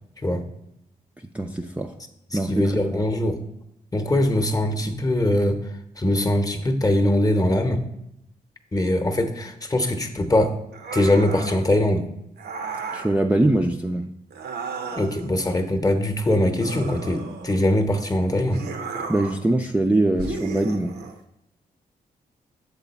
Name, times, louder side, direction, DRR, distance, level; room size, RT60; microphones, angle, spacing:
voice 1, 1.3-2.0 2.3-3.0 12.9-14.1 19.1-21.0, right 1 dB, 10° right, 3 dB, 0.4 m, -23 dB
voice 2, 2.3-3.4 3.9-5.6 6.0-7.8 8.7-10.5 10.9-12.1 14.9-18.6, left 1 dB, 20° left, 7 dB, 0.8 m, -22 dB
sound 1, 10.7-11.7 12.4-13.2 14.3-15.3 16.6-17.7 18.5-19.5 20.2-21.2, right 5 dB, 75° right, 0.7 m, -34 dB
7.0 x 4.0 x 4.1 m, 0.81 s
cardioid pair, 60°, 17 cm